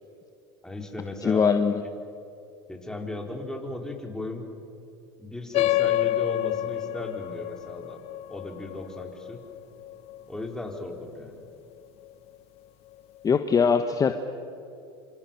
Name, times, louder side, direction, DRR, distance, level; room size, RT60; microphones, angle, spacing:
voice 1, 0.6-1.6 2.7-4.4 5.2-8.0 8.3-9.4 10.3-11.4, left 2 dB, 5° left, 2 dB, 4.4 m, -36 dB
voice 2, 1.2-1.8 13.2-14.1, left 6 dB, 30° left, 8 dB, 1.3 m, -21 dB
sound 1, 5.5-10.5, left 14 dB, 55° left, 0.8 m, -28 dB
26.5 x 26.5 x 7.3 m, 2.6 s
hypercardioid pair, 85°, 13 cm